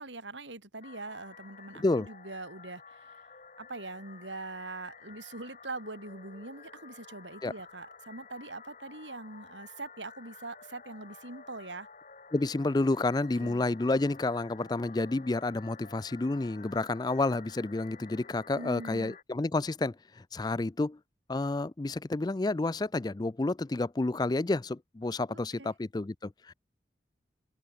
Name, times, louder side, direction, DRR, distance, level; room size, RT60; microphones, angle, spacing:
voice 1, 0.0-3.1 3.6-11.9 13.4-13.6 18.5-19.2 25.3-25.7, right 2 dB, 90° right, 5.8 m, -43 dB
sound 1, 0.8-19.2, left 5 dB, 40° left, 3.0 m, -52 dB
voice 2, 1.8-2.1 7.4-7.5 12.3-21.0 21.3-26.5, left 2 dB, 20° left, 0.4 m, -30 dB
open air
head